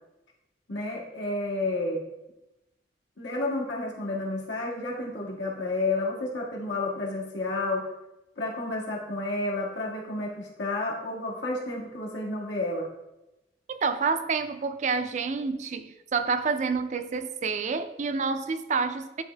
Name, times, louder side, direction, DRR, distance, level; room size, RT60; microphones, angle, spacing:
voice 1, 0.7-2.0 3.2-7.9 8.4-12.9, left 2 dB, 90° left, 1.7 m, -31 dB
voice 2, 13.7-19.2, right 4 dB, 40° right, 0.4 m, -28 dB
10.5 x 3.5 x 3.3 m
head